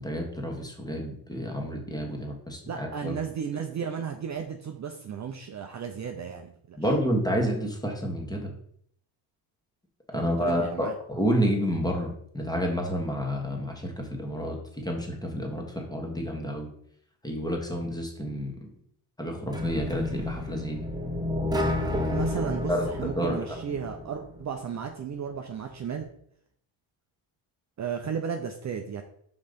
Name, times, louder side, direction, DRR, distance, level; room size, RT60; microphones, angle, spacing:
voice 1, 0.0-3.2 6.8-8.5 10.1-16.7 17.2-18.7 19.2-20.8 22.7-23.4, equal, 10° left, 1 dB, 1.5 m, -29 dB
voice 2, 2.6-6.8 10.1-10.9 22.1-26.1 27.8-29.0, right 7 dB, 35° right, 4 dB, 0.6 m, -34 dB
sound 1, 19.5-24.5, left 1 dB, 10° right, 0.9 m, -30 dB
5.4 x 4.0 x 5.1 m, 0.67 s
cardioid pair, 105°, 49 cm